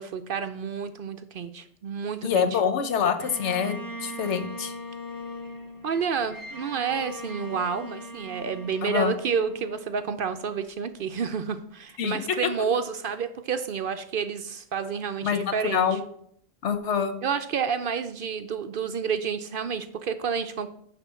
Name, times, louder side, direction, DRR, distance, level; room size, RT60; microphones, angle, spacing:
voice 1, 0.0-2.6 5.8-16.0 17.2-20.7, right 6 dB, 60° right, 9 dB, 0.6 m, -30 dB
voice 2, 2.2-4.7 8.8-9.1 12.0-12.2 15.2-16.0 16.6-17.1, left 7 dB, 70° left, 8 dB, 1.2 m, -26 dB
Bowed string instrument, 3.2-10.5, left 1 dB, 20° right, 0.8 m, -40 dB
10.0 x 3.7 x 6.9 m, 0.68 s
omnidirectional pair, 1.2 m